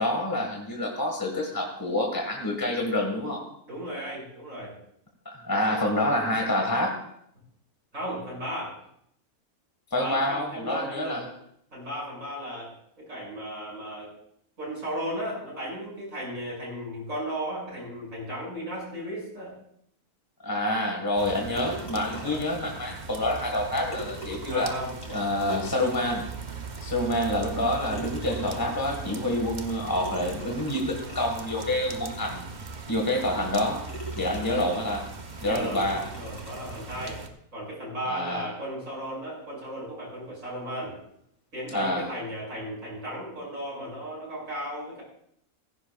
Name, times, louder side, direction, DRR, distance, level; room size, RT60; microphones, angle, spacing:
voice 1, 0.0-3.4 5.3-7.0 9.9-11.2 20.4-24.7 25.1-26.2 26.8-32.4 32.9-33.8 34.2-35.1 35.4-36.1 38.1-38.4 41.7-42.1, left 1 dB, 15° left, 0 dB, 1.7 m, -27 dB
voice 2, 3.7-4.7 5.7-5.8 7.9-8.8 10.0-11.3 11.7-14.1 14.6-19.5 22.2-22.5 24.5-25.0 34.4-34.8 35.4-37.2 37.5-41.0 41.5-45.0, equal, 60° right, -5 dB, 7.1 m, -35 dB
sound 1, 21.2-37.3, right 4 dB, 35° right, 0.9 m, -39 dB
sound 2, 21.6-22.5 23.6-23.7 23.9-26.5 27.1-27.2 27.9-28.9 30.0-31.5 32.2-32.3 32.8-32.9 33.4-33.6 33.9-35.2 35.7-36.9, right 1 dB, 70° left, 3.9 m, -42 dB
16.0 x 15.5 x 2.4 m, 0.70 s
omnidirectional pair, 1.6 m